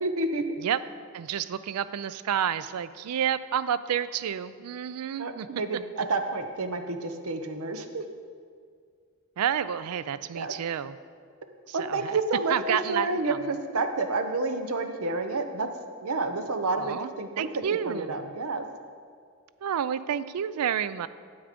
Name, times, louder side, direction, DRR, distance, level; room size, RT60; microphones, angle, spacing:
voice 1, 0.0-0.4 5.2-8.0 10.3-10.5 11.7-15.7 16.0-17.5 17.9-18.7, right 3 dB, 75° right, 7 dB, 0.8 m, -29 dB
voice 2, 1.1-5.5 9.4-11.0 11.7-12.2 12.5-13.4 16.8-17.1 17.4-18.3 19.6-21.1, right 9 dB, 90° right, 15 dB, 0.4 m, -30 dB
9.4 x 8.0 x 5.1 m, 2.1 s
head